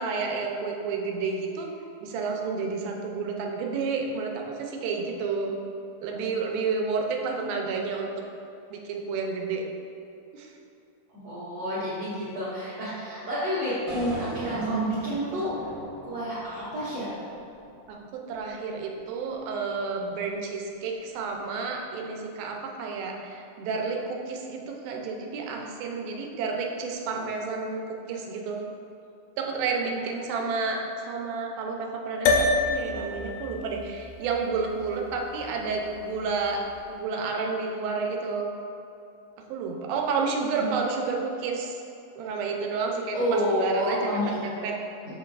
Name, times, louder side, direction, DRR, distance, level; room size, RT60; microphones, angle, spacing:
voice 1, 0.0-1.7 2.0-5.5 6.0-8.1 8.7-9.6 10.3-10.5 17.9-28.7 29.4-36.6 36.9-38.5 39.5-41.8 42.2-44.8, right 4 dB, 85° right, 1 dB, 2.5 m, -30 dB
voice 2, 11.1-15.5 16.0-17.2 29.8-30.1 43.1-44.5, equal, 55° right, -12 dB, 1.9 m, -29 dB
sound 1, 13.9-18.0, equal, 70° right, 0.8 m, -39 dB
sound 2, 32.3-36.8, left 3 dB, 80° left, 2.0 m, -29 dB
7.0 x 5.9 x 2.4 m, 2.7 s
omnidirectional pair, 4.1 m